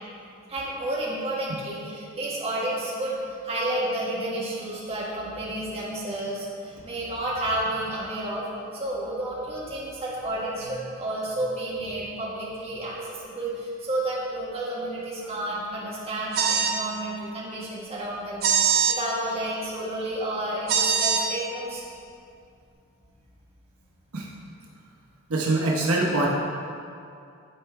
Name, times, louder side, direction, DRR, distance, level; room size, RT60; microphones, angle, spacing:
voice 1, 0.5-3.2 3.4-8.4 8.7-21.8, right 1 dB, 30° right, -8 dB, 1.7 m, -31 dB
sound 1, 16.3-16.8 18.4-19.0 20.7-21.2, right 7 dB, 45° right, 0.5 m, -22 dB
voice 2, 25.3-26.3, right 2 dB, 85° right, -3 dB, 0.9 m, -24 dB
11.0 x 4.6 x 3.2 m, 2.4 s
head